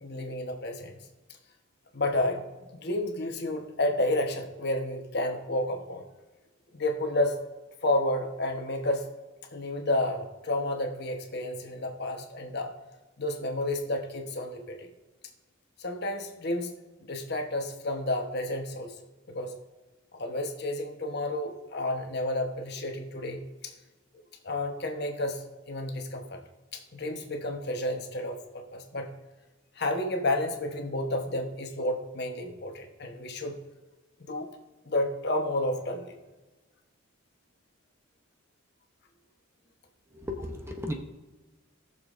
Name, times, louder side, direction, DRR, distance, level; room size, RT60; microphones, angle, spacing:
voice 1, 0.0-1.0 1.9-2.4 2.8-6.0 6.7-7.3 7.8-9.0 9.5-12.7 13.2-14.9 15.8-16.7 17.1-18.9 19.3-19.5 20.1-23.7 24.4-26.4 26.7-29.1 29.8-33.5 34.3-34.5 34.8-36.1, left 1 dB, 55° left, 3 dB, 1.2 m, -31 dB
voice 2, 40.1-40.9, left 1 dB, 15° right, 3 dB, 0.9 m, -35 dB
19.5 x 6.8 x 2.6 m, 1.2 s
head